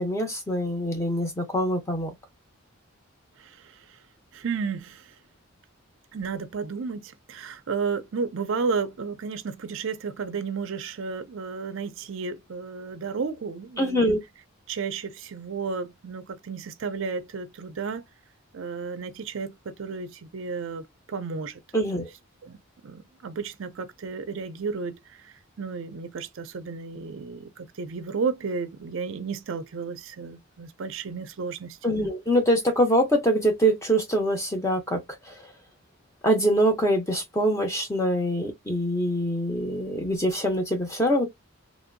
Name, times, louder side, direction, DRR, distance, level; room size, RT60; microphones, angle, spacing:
voice 1, 0.0-2.1 13.8-14.2 21.7-22.1 31.8-35.0 35.3-35.5 36.2-41.3, equal, 15° left, 0.7 m, -24 dB
voice 2, 3.4-4.0 4.3-5.1 6.1-14.2 14.7-18.0 18.5-21.6 21.9-22.1 22.4-22.6 22.8-32.1, right 5 dB, 60° right, 0.4 m, -33 dB
3.0 x 2.6 x 2.5 m
head